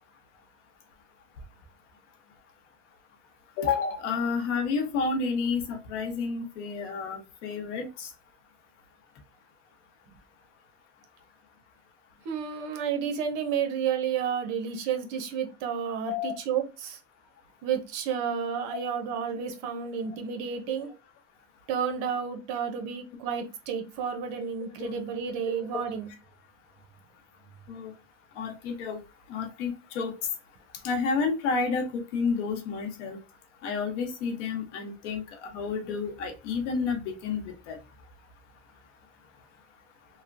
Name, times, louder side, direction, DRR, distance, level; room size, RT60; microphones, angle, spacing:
voice 1, 3.6-8.1 16.1-16.3 24.8-25.0 25.7-25.8 27.7-27.9 28.4-29.0 29.3-30.1 30.8-33.2 33.6-37.8, left 5 dB, 90° left, 5 dB, 0.9 m, -30 dB
voice 2, 12.2-17.0 17.6-20.9 21.7-26.1, right 7 dB, 60° right, 6 dB, 0.8 m, -31 dB
3.0 x 2.1 x 2.5 m, 0.29 s
supercardioid pair, 135°, 34 cm